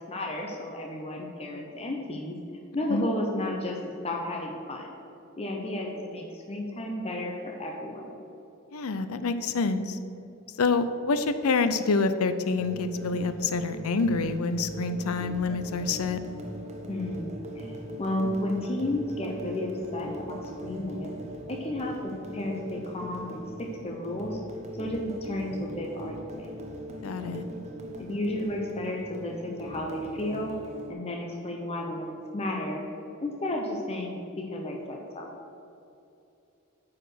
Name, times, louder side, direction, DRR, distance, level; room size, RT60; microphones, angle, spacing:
voice 1, 0.0-2.4 2.7-3.8 4.0-4.9 5.4-8.1 16.9-17.7 18.0-21.1 21.5-24.4 24.8-26.5 27.0-27.4 28.0-30.5 30.9-32.8 33.2-35.3, left 1 dB, 30° left, 1 dB, 0.7 m, -33 dB
voice 2, 8.7-10.0 10.6-16.2 27.0-27.4, left 4 dB, 85° left, 11 dB, 0.6 m, -27 dB
sound 1, 12.5-30.9, equal, 30° right, 1.0 m, -41 dB
9.1 x 4.9 x 6.3 m, 2.7 s
head